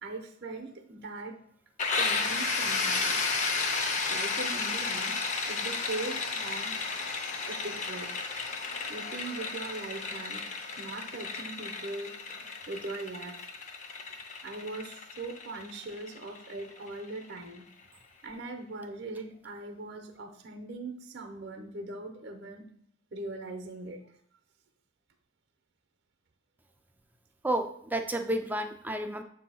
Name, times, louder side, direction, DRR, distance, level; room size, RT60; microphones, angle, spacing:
voice 1, 0.0-1.4 1.9-3.5 4.1-5.2 5.5-6.8 7.4-8.2 8.9-13.5 14.1-17.6 18.2-22.6 23.1-24.1, right 2 dB, 50° right, 6 dB, 0.7 m, -40 dB
sound 1, 1.8-17.4, left 4 dB, 35° left, 0.6 m, -33 dB
voice 2, 27.4-29.2, right 1 dB, 10° right, 6 dB, 0.3 m, -31 dB
7.5 x 2.7 x 5.5 m, 0.68 s
head